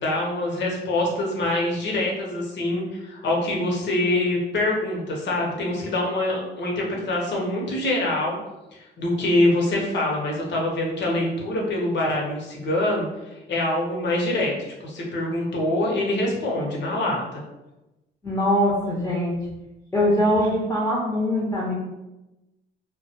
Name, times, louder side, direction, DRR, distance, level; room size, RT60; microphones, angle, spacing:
voice 1, 0.0-8.4 8.7-14.5 14.8-17.4, left 1 dB, 65° left, -2 dB, 0.8 m, -25 dB
voice 2, 18.2-19.4 19.9-21.7, equal, 10° left, -5 dB, 0.6 m, -22 dB
2.2 x 2.2 x 2.7 m, 0.98 s
cardioid pair, 90°, 20 cm